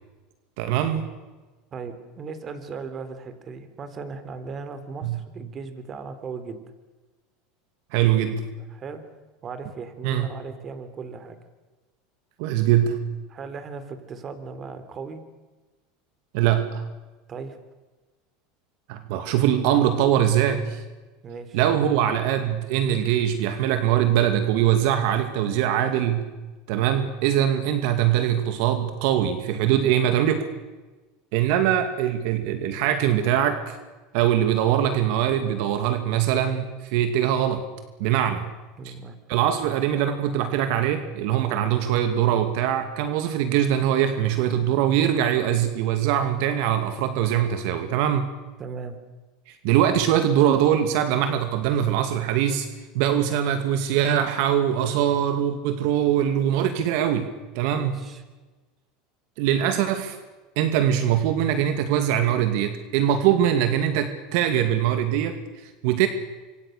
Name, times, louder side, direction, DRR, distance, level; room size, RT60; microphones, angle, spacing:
voice 1, 0.6-1.1 5.0-5.2 7.9-8.5 10.0-10.3 12.4-13.0 16.3-16.8 18.9-20.8 21.5-26.3 26.7-30.5 31.3-33.8 34.1-37.6 38.0-38.4 38.9-39.0 39.3-48.3 49.5-52.7 52.9-58.0 59.4-60.2 60.6-66.1, right 10 dB, 65° right, 8 dB, 2.3 m, -22 dB
voice 2, 1.7-6.6 8.7-9.0 9.4-11.4 13.3-15.2 17.3-17.6 21.2-21.6 38.8-39.2 48.6-49.0 57.7-58.2, right 5 dB, 30° right, 10 dB, 3.5 m, -37 dB
26.0 x 25.0 x 6.7 m, 1.2 s
supercardioid pair, 120°, 0 cm